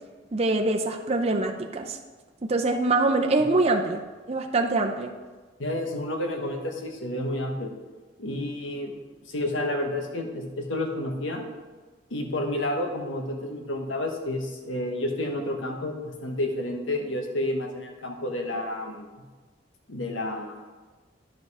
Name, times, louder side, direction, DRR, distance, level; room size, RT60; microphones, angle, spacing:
voice 1, 0.3-2.0 2.5-4.0 4.3-5.1, right 2 dB, 35° right, 3 dB, 0.6 m, -24 dB
voice 2, 5.6-7.7 8.2-9.0 9.2-11.4 12.1-19.1 19.9-20.7, left 1 dB, 90° left, 3 dB, 1.3 m, -30 dB
10.5 x 5.4 x 4.8 m, 1.3 s
head